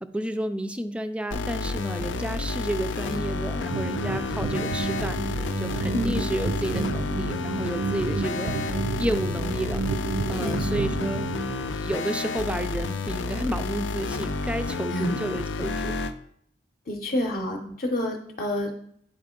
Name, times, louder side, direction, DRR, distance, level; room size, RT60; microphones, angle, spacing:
voice 1, 0.0-8.6 9.0-11.2 11.7-15.9 17.6-17.8, right 1 dB, 5° right, 9 dB, 0.3 m, -31 dB
sound 1, 1.3-16.1, left 3 dB, 90° left, 0.5 m, -30 dB
sound 2, 3.7-11.6, right 3 dB, 70° right, 0.6 m, -31 dB
voice 2, 10.4-10.9 14.9-15.2 16.9-18.7, equal, 50° left, 1 dB, 0.7 m, -28 dB
9.5 x 4.2 x 3.7 m, 0.69 s
head